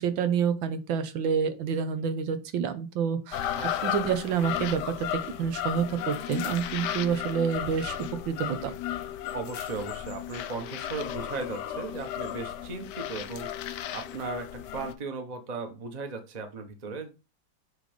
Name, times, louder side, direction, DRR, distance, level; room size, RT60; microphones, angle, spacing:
voice 1, 0.0-3.5 3.8-8.0 8.3-8.7, right 7 dB, 85° right, 10 dB, 1.6 m, -28 dB
sound 1, 3.3-14.9, left 11 dB, 70° left, 1.2 m, -34 dB
voice 2, 3.5-3.9 9.3-17.1, right 4 dB, 30° right, 6 dB, 0.9 m, -37 dB
7.7 x 3.3 x 5.1 m, 0.29 s
omnidirectional pair, 2.1 m